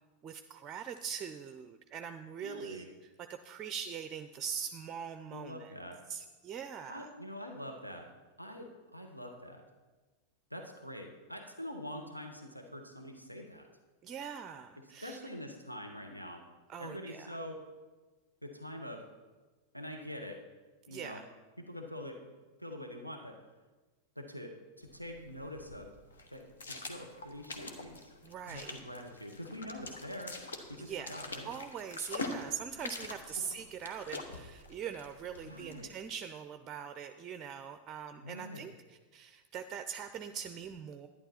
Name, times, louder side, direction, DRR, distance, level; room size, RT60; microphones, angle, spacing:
voice 1, 0.2-5.8 6.1-7.1 14.0-15.2 16.7-17.4 20.9-21.2 28.2-28.8 30.8-41.1, right 7 dB, 30° right, 9 dB, 0.5 m, -42 dB
voice 2, 2.4-2.9 5.3-6.0 6.9-8.1 8.4-9.6 10.5-13.7 15.0-16.4 16.8-17.6 18.4-19.0 19.7-20.4 20.9-21.2 21.7-22.2 22.6-23.4 24.2-25.9 26.3-28.1 28.5-30.3 30.7-31.5 35.4-35.9 38.2-38.6, left 1 dB, 90° left, 3 dB, 1.0 m, -45 dB
sound 1, 24.8-35.9, left 3 dB, 70° left, 1.2 m, -45 dB
11.5 x 10.0 x 4.3 m, 1.3 s
figure-of-eight pair, 90°, 0 cm